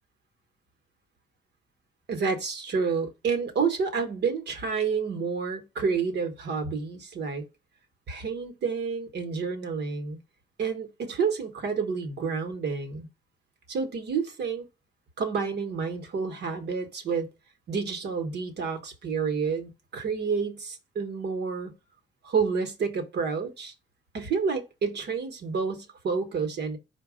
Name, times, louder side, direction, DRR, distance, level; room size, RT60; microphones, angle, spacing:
voice 1, 2.1-7.5 8.1-10.2 10.6-13.1 13.7-14.7 15.2-17.3 17.7-21.7 22.2-23.7 24.1-26.8, right 5 dB, 60° right, 1.1 m, -29 dB
4.6 x 2.3 x 4.8 m
cardioid pair, 90°, 20 cm